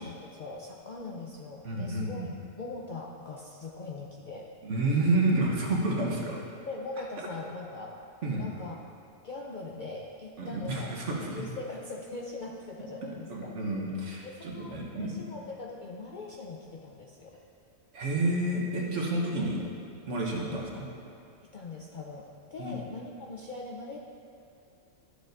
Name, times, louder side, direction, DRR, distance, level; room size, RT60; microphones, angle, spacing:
voice 1, 0.0-2.3 2.6-4.5 6.7-8.0 8.3-8.8 9.2-13.5 14.2-17.3 19.4-19.7 20.3-20.6 21.4-24.0, left 3 dB, 60° left, -1 dB, 0.5 m, -41 dB
voice 2, 1.6-2.3 4.6-6.4 8.2-8.4 10.4-11.5 13.3-15.2 17.9-19.6 20.1-20.9 22.6-22.7, right 2 dB, 65° right, -3 dB, 1.5 m, -29 dB
12.0 x 6.7 x 2.6 m, 2.6 s
omnidirectional pair, 1.3 m